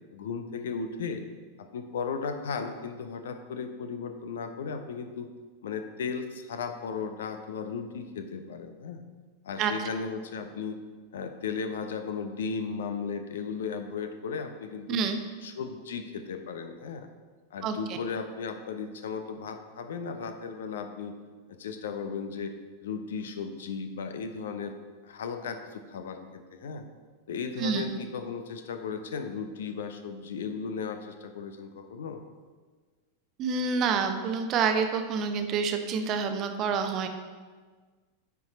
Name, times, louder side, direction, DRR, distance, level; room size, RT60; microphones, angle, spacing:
voice 1, 0.1-1.2 1.6-5.3 5.6-9.0 9.4-10.8 11.1-15.0 15.4-17.1 17.5-21.1 21.5-24.8 25.0-26.8 27.3-32.2, left 5 dB, 60° left, 8 dB, 0.7 m, -36 dB
voice 2, 14.9-15.2 17.6-17.7 27.6-27.8 33.4-37.1, right 5 dB, 35° right, 6 dB, 0.7 m, -27 dB
9.5 x 4.7 x 4.2 m, 1.4 s
figure-of-eight pair, 90°, 0 cm